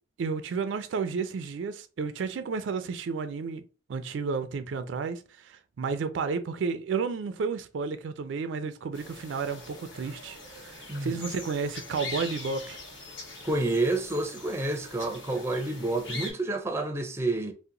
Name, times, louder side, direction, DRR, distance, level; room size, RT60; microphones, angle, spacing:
voice 1, 0.2-3.6 3.9-12.8, right 5 dB, 75° right, 0.4 m, -32 dB
sound 1, 8.9-16.3, left 2 dB, 80° left, 1.1 m, -42 dB
voice 2, 10.9-11.2 13.4-17.5, right 2 dB, 15° right, 0.5 m, -29 dB
2.8 x 2.1 x 3.7 m
head